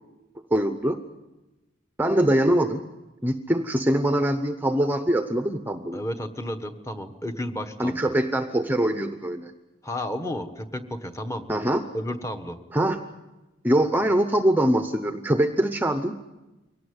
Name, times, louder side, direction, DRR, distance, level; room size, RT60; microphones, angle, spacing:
voice 1, 0.5-1.0 2.0-2.8 3.2-6.0 7.8-9.5 11.5-11.8 12.7-13.1 13.6-16.3, right 1 dB, 10° right, 7 dB, 0.8 m, -23 dB
voice 2, 5.9-8.1 9.8-11.5 11.9-12.6, left 1 dB, 15° left, 8 dB, 1.4 m, -32 dB
23.0 x 18.0 x 9.7 m, 1.1 s
head